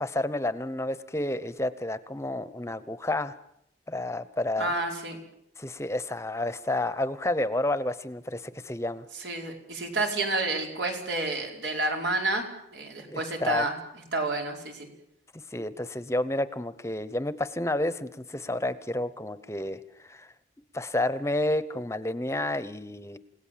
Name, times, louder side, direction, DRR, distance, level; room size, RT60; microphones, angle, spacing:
voice 1, 0.0-3.4 3.9-4.7 5.6-9.0 13.1-13.7 15.5-20.3 20.7-23.2, left 1 dB, 15° left, 14 dB, 0.8 m, -30 dB
voice 2, 4.6-5.2 9.1-12.5 12.7-13.8 14.1-14.9, right 2 dB, 90° right, 2 dB, 5.0 m, -29 dB
29.0 x 17.5 x 7.5 m, 0.77 s
head